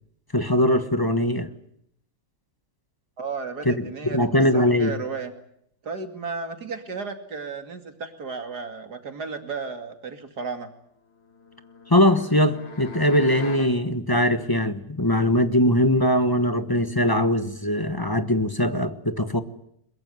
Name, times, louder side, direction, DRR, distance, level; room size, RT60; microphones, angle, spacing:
voice 1, 0.3-1.5 3.6-5.0 11.9-19.4, left 1 dB, 15° left, 10 dB, 1.1 m, -21 dB
voice 2, 3.2-5.3 5.8-10.7, right 4 dB, 60° right, 7 dB, 3.0 m, -34 dB
sound 1, 11.2-13.8, left 4 dB, 75° left, 3.3 m, -41 dB
22.0 x 22.0 x 9.5 m, 0.73 s
omnidirectional pair, 2.0 m